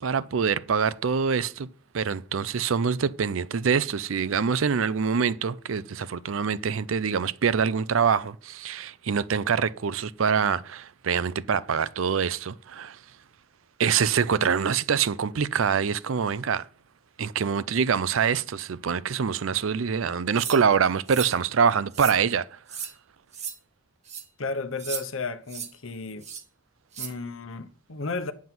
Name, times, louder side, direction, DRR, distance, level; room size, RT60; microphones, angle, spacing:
voice 1, 0.0-1.7 1.9-13.0 13.8-16.7 17.2-22.6, right 6 dB, 75° right, 0.5 m, -25 dB
sound 1, 20.4-20.6 21.1-21.4 21.9-22.2 22.7-22.9 23.3-23.5 24.1-24.2 24.8-25.0 25.5-25.7 26.2-26.4 26.9-27.1, right 7 dB, 35° right, 1.5 m, -35 dB
voice 2, 24.4-26.3 27.0-28.3, left 3 dB, 80° left, 1.0 m, -33 dB
9.4 x 7.3 x 5.9 m
head